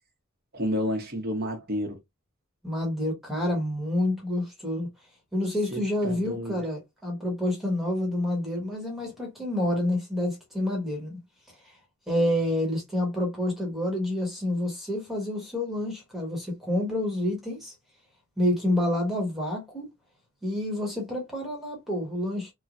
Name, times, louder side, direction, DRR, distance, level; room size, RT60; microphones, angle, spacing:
voice 1, 0.5-2.0 5.7-6.6, equal, 50° right, 1.0 m, -30 dB
voice 2, 2.6-4.9 5.3-11.2 12.1-17.7 18.4-19.9 20.4-22.5, left 1 dB, ahead, 1.2 m, -28 dB
3.1 x 2.3 x 2.4 m
head